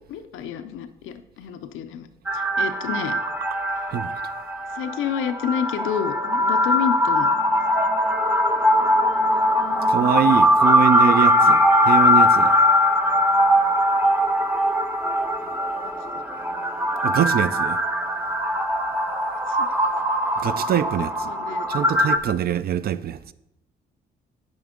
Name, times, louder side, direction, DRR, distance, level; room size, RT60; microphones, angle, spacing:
voice 1, 0.1-2.1 2.3-3.2 3.8-3.9 4.7-7.6 8.7-8.8 15.4-15.6 15.8-15.9 19.5-19.7 20.5-20.7 21.0-21.7, left 8 dB, 85° left, 0.5 m, -30 dB
sound 1, 2.3-22.2, equal, 10° right, 0.7 m, -21 dB
voice 2, 9.9-12.6 17.0-17.8 20.4-21.3 21.7-23.2, right 9 dB, 50° right, 0.4 m, -24 dB
8.9 x 5.2 x 3.7 m
cardioid pair, 90°, 20 cm